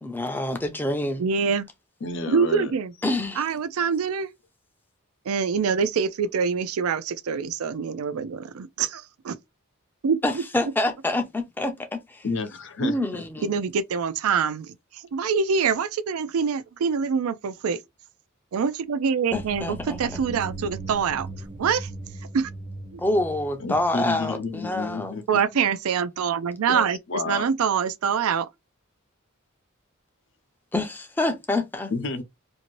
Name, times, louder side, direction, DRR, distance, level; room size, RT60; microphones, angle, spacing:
voice 1, 0.0-1.2 3.0-3.5 10.2-12.2 12.8-13.5 19.3-20.0 23.0-25.1 30.7-31.9, left 1 dB, 10° left, 0.4 m, -27 dB
voice 2, 1.2-1.7 2.3-2.9 3.4-4.3 5.3-9.4 10.0-10.4 13.4-17.8 18.5-21.3 21.6-21.9 22.3-22.5 22.9-23.0 25.3-27.0 27.3-28.5, right 6 dB, 90° right, 0.4 m, -25 dB
voice 3, 2.0-2.7 12.2-13.2 23.6-25.4 26.7-27.5 31.9-32.2, left 3 dB, 60° left, 0.6 m, -30 dB
sound 1, 19.3-25.1, right 2 dB, 35° right, 0.6 m, -39 dB
2.6 x 2.5 x 3.0 m
head